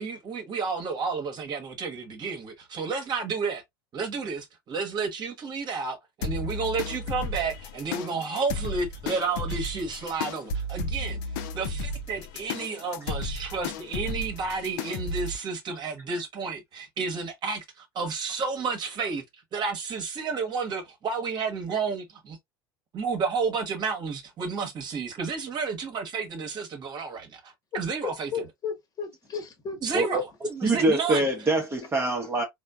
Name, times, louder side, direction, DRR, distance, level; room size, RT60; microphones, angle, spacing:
voice 1, 0.0-3.6 3.9-11.2 11.5-19.2 19.5-22.4 22.9-28.5 29.8-31.3, right 4 dB, 35° right, 1.2 m, -31 dB
sound 1, 6.2-15.4, left 2 dB, 60° left, 0.6 m, -34 dB
voice 2, 28.0-30.2, left 6 dB, 30° left, 1.3 m, -35 dB
voice 3, 30.6-32.4, right 2 dB, 20° right, 0.9 m, -24 dB
4.3 x 2.3 x 2.4 m
figure-of-eight pair, 80°, 12 cm